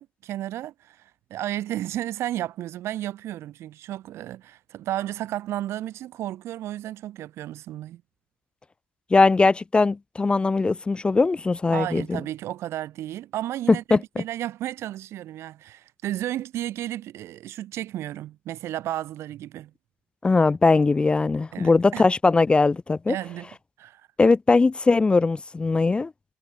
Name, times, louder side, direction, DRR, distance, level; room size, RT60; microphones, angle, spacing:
voice 1, 0.0-8.0 11.7-19.7 21.5-22.1 23.1-23.5 23.8-24.0, right 13 dB, 65° right, 4.6 m, -33 dB
voice 2, 9.1-12.2 13.9-14.0 20.2-23.2 24.2-26.1, left 3 dB, 20° left, 0.6 m, -20 dB
supercardioid pair, 80°, 5 cm